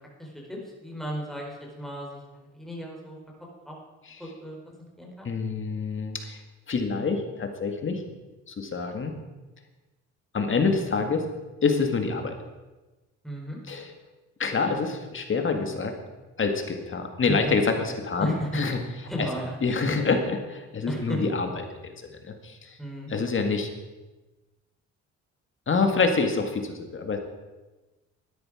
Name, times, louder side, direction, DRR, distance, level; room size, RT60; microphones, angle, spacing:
voice 1, 0.2-3.2 3.7-3.8 4.2-5.3 13.2-13.6 17.3-17.4 18.2-18.5 19.0-19.5 20.9-21.2 22.8-23.1, equal, ahead, -2 dB, 4.3 m, -35 dB
voice 2, 5.2-6.4 6.7-8.0 8.5-9.1 10.3-11.3 11.6-12.4 13.7-13.9 14.4-16.0 16.4-18.8 19.2-19.3 19.6-22.8 23.1-23.7 25.7-27.2, left 4 dB, 40° left, 5 dB, 2.0 m, -26 dB
12.5 x 10.5 x 4.9 m, 1.1 s
cardioid pair, 90°, 30 cm